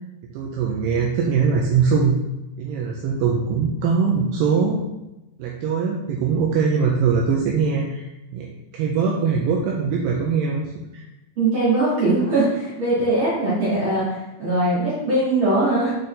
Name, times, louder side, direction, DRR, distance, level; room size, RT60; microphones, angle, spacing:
voice 1, 0.3-2.2 2.6-4.8 5.4-8.1 8.3-8.5 8.7-11.0, right 5 dB, 85° right, -1 dB, 2.4 m, -21 dB
voice 2, 11.4-15.9, right 2 dB, 50° right, -8 dB, 1.5 m, -21 dB
8.3 x 4.2 x 3.3 m, 0.96 s
omnidirectional pair, 5.4 m